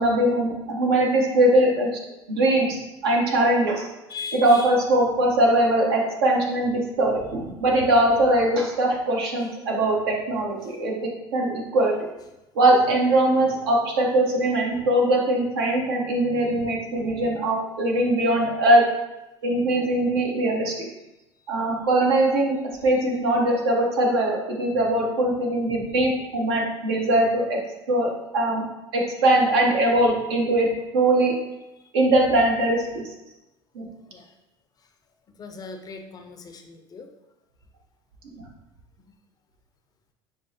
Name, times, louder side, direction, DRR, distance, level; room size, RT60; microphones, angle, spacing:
voice 1, 0.0-1.9 2.3-3.9 4.3-12.0 12.5-18.8 19.4-20.7 21.5-22.6 22.8-27.6 27.9-28.6 28.9-31.3 31.9-33.0 33.7-33.9, right 1 dB, 75° right, 0 dB, 0.7 m, -21 dB
voice 2, 4.1-4.7 34.1-34.3 35.4-37.1, left 4 dB, 30° left, 6 dB, 0.4 m, -38 dB
5.2 x 2.0 x 2.6 m, 0.99 s
hypercardioid pair, 75°, 13 cm